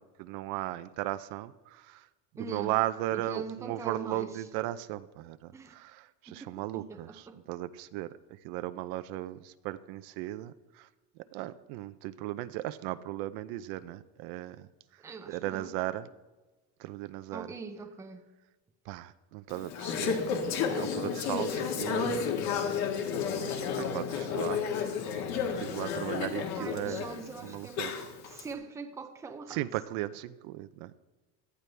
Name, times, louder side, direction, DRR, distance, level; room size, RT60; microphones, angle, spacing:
voice 1, 0.2-2.1 2.4-8.1 8.4-10.9 11.3-14.7 15.3-16.1 16.8-17.5 18.9-20.2 20.6-22.5 22.9-25.0 25.6-27.0 27.4-27.9 29.5-31.0, right 15 dB, 60° right, 0.6 m, -36 dB
voice 2, 2.4-2.8 3.1-4.5 5.5-5.7 6.3-7.4 15.0-15.8 17.3-18.3 26.6-29.6, right 4 dB, 10° right, 0.6 m, -42 dB
Conversation / Chatter, 19.5-28.4, left 6 dB, 50° left, 1.7 m, -32 dB
17.5 x 12.5 x 3.4 m
cardioid pair, 175°, 37 cm